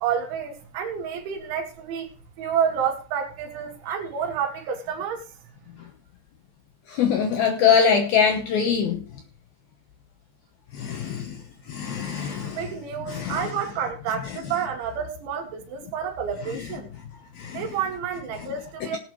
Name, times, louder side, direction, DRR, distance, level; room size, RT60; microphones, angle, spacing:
voice 1, 0.0-2.1 2.4-5.2 12.6-16.9 17.5-19.0, right 7 dB, 75° right, 4.2 m, -29 dB
voice 2, 6.9-9.0 10.8-11.4 11.7-12.6 13.1-13.4 17.4-17.6, left 6 dB, 70° left, 2.3 m, -23 dB
18.5 x 9.5 x 3.1 m
omnidirectional pair, 5.6 m